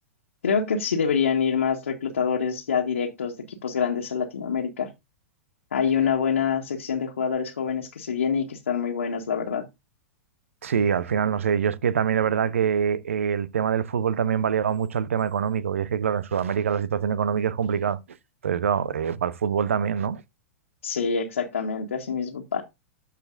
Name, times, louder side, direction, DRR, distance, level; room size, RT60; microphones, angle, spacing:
voice 1, 0.4-4.9 5.7-9.7 20.8-22.6, left 6 dB, 70° left, 1.7 m, -26 dB
voice 2, 10.6-18.0 18.4-20.2, right 7 dB, 65° right, 0.8 m, -24 dB
13.5 x 5.1 x 2.6 m
figure-of-eight pair, 100°, 8 cm